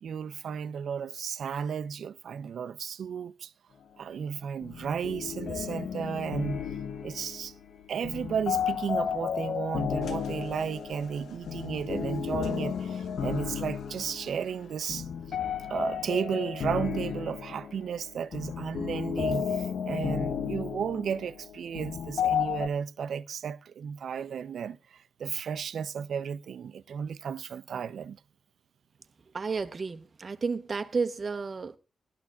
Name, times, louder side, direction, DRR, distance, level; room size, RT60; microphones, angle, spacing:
voice 1, 0.0-3.5 4.0-6.6 7.0-7.5 7.9-15.1 15.7-28.2, right 7 dB, 65° right, 0.6 m, -34 dB
sound 1, 4.6-22.7, left 7 dB, 55° left, 0.8 m, -33 dB
sound 2, 10.0-15.1, left 6 dB, 80° left, 1.0 m, -53 dB
voice 2, 29.3-31.8, right 4 dB, 30° right, 0.8 m, -32 dB
19.0 x 13.0 x 2.4 m
wide cardioid pair, 170°, 0 cm